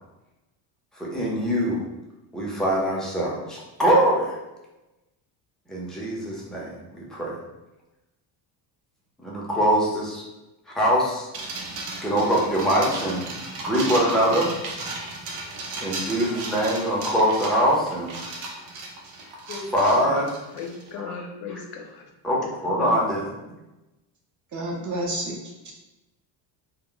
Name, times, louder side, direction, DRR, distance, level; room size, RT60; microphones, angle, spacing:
voice 1, 1.0-1.9 2.3-4.4 5.7-7.3 9.2-10.2 10.7-11.3 12.0-13.2 13.6-14.5 15.8-18.1 19.7-20.3 21.0-21.1 22.2-23.2, equal, ahead, -5 dB, 0.5 m, -23 dB
sound 1, 11.3-20.9, right 2 dB, 90° right, 0.7 m, -35 dB
voice 2, 19.5-20.2 20.5-22.1 22.3-23.0, left 5 dB, 75° left, 2 dB, 0.6 m, -37 dB
voice 3, 24.5-25.7, right 1 dB, 40° right, -1 dB, 0.6 m, -30 dB
2.2 x 2.1 x 3.7 m, 1.0 s
cardioid pair, 125°, 46 cm